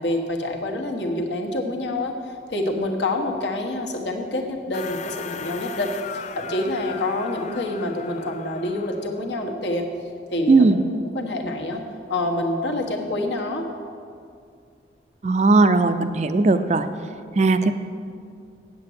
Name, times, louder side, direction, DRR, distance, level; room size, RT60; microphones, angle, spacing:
voice 1, 0.0-5.9 6.4-9.8 10.3-10.7 11.1-11.8 12.1-13.6, left 1 dB, 75° left, 1 dB, 1.3 m, -27 dB
sound 1, 4.7-9.3, left 7 dB, 40° left, 0.4 m, -38 dB
voice 2, 10.5-10.8 15.2-16.9 17.4-17.7, right 3 dB, 40° right, 10 dB, 0.4 m, -17 dB
8.3 x 7.6 x 7.8 m, 2.3 s
head